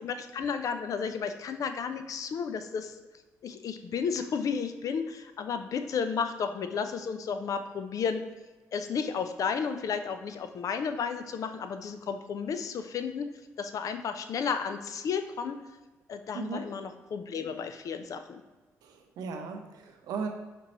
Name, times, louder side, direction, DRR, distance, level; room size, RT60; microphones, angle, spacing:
voice 1, 0.0-3.0 3.4-8.2 8.7-13.3 13.6-15.5 16.1-18.4, left 6 dB, 55° left, 8 dB, 0.4 m, -33 dB
voice 2, 18.8-20.3, right 5 dB, 80° right, 4 dB, 0.6 m, -36 dB
5.0 x 3.0 x 2.9 m, 1.2 s
supercardioid pair, 60°, 7 cm